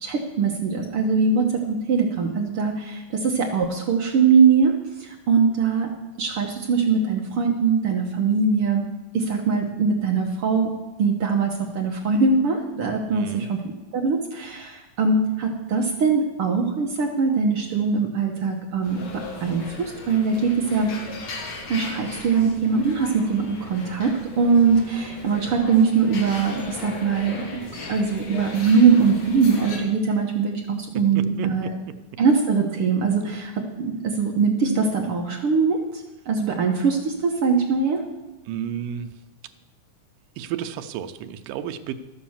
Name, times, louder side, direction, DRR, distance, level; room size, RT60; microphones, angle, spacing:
voice 1, 0.0-5.9 6.2-8.8 9.1-10.7 11.0-13.6 13.9-19.0 19.4-20.9 21.7-27.6 27.9-31.7 32.2-38.0, right 5 dB, 60° right, 0 dB, 1.6 m, -22 dB
voice 2, 13.1-13.5 31.2-31.7 38.5-39.1 40.4-41.9, right 10 dB, 85° right, 9 dB, 2.4 m, -31 dB
sound 1, 18.8-29.8, left 3 dB, 55° left, 2.8 m, -37 dB
13.0 x 7.9 x 7.2 m, 1.1 s
omnidirectional pair, 3.8 m